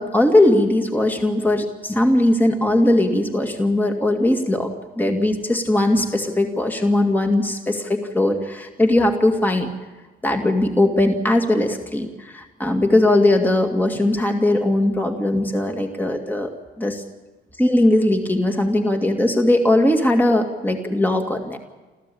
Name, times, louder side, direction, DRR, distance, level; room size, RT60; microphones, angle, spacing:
voice 1, 0.0-9.7 10.2-16.5 16.8-17.0 17.6-21.6, left 1 dB, 10° left, 3 dB, 2.2 m, -19 dB
27.0 x 14.5 x 8.6 m, 1.3 s
cardioid pair, 90°, 20 cm